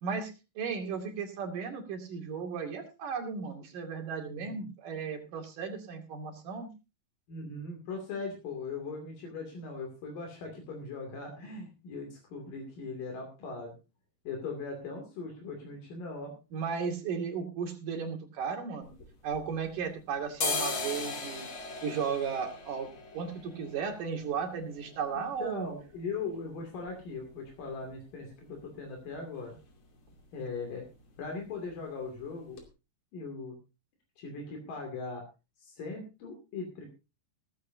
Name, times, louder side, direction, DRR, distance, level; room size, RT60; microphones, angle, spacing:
voice 1, 0.0-6.7 16.5-18.9 19.2-21.5 21.8-22.9 23.1-25.7, right 6 dB, 75° right, 3 dB, 3.9 m, -35 dB
voice 2, 4.3-4.6 7.3-13.7 14.3-16.3 25.1-29.6 30.3-30.9 31.2-32.6 33.1-33.5 34.2-35.2 35.6-36.9, left 4 dB, 80° left, 2 dB, 4.3 m, -39 dB
sound 1, 18.8-19.9 20.2-27.9 28.2-28.3 28.6-29.2 29.5-29.7 30.0-30.2 30.5-31.2 31.5-31.7 32.2-32.3 32.6-32.7, left 3 dB, 40° left, 3.2 m, -39 dB
17.0 x 14.5 x 2.7 m, 0.29 s
omnidirectional pair, 3.8 m